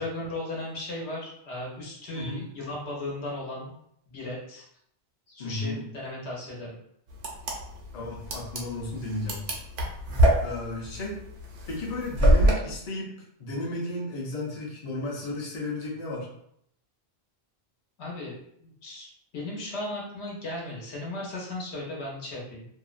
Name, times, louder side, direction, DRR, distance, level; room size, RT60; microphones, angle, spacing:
voice 1, 0.0-3.7 4.1-4.6 5.3-6.8 10.1-10.3 18.0-22.6, left 2 dB, 90° left, -3 dB, 1.1 m, -36 dB
voice 2, 2.1-2.4 5.4-5.8 7.9-9.4 10.4-11.2 11.7-13.1 13.4-16.3, left 2 dB, 45° left, -3 dB, 0.6 m, -33 dB
sound 1, 7.1-12.5, right 1 dB, 85° right, 0.8 m, -24 dB
2.6 x 2.0 x 2.4 m, 0.72 s
omnidirectional pair, 1.1 m